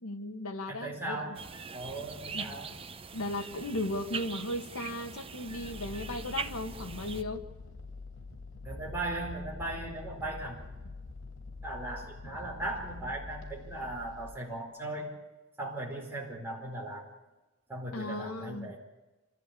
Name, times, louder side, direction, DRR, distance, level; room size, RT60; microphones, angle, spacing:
voice 1, 0.0-1.4 2.3-2.5 3.1-7.5 17.9-18.7, left 1 dB, 80° left, 5 dB, 1.8 m, -36 dB
voice 2, 0.7-1.4 1.7-2.7 8.6-10.6 11.6-15.1 15.6-17.1 17.7-18.8, right 2 dB, 10° right, -3 dB, 4.7 m, -38 dB
sound 1, 1.3-7.2, right 5 dB, 25° right, 0.7 m, -42 dB
sound 2, 5.5-14.3, left 3 dB, 65° left, 3.9 m, -45 dB
26.5 x 14.0 x 8.6 m, 1.1 s
head